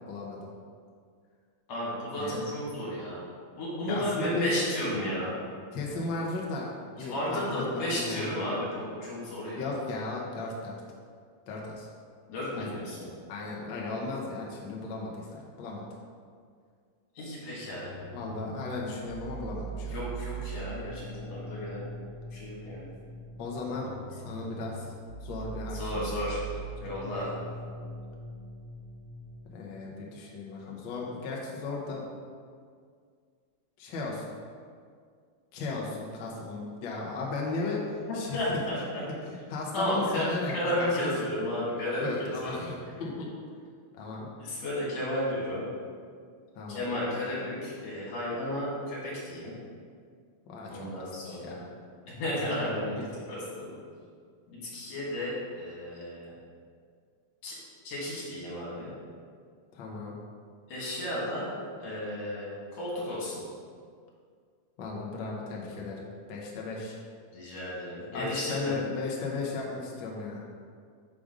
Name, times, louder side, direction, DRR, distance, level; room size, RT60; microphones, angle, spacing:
voice 1, 0.1-0.5 2.1-2.3 3.9-4.5 5.7-8.3 9.6-10.8 11.5-11.9 12.5-12.7 13.3-15.9 18.1-20.0 23.4-24.9 25.2-26.1 26.8-26.9 29.5-32.0 33.8-34.3 35.5-38.4 39.5-41.1 42.0-43.3 43.9-44.3 46.5-46.9 50.5-51.7 53.0-53.1 59.7-60.1 64.8-67.0 68.1-70.7, left 3 dB, 80° left, -3 dB, 1.0 m, -36 dB
voice 2, 1.7-3.2 3.6-5.4 7.0-9.7 12.3-13.1 17.1-18.0 19.8-21.8 22.3-22.9 25.7-26.4 26.8-27.3 38.1-38.8 39.7-42.7 44.4-45.7 46.7-49.5 50.7-51.6 52.1-53.0 53.3-53.8 54.5-56.3 57.4-57.6 57.8-58.9 60.7-61.5 61.8-63.4 67.3-68.7, left 1 dB, 60° left, -7 dB, 3.0 m, -33 dB
sound 1, 17.5-29.5, right 3 dB, 60° right, 2.7 m, -41 dB
6.8 x 4.9 x 3.8 m, 2.1 s
omnidirectional pair, 3.5 m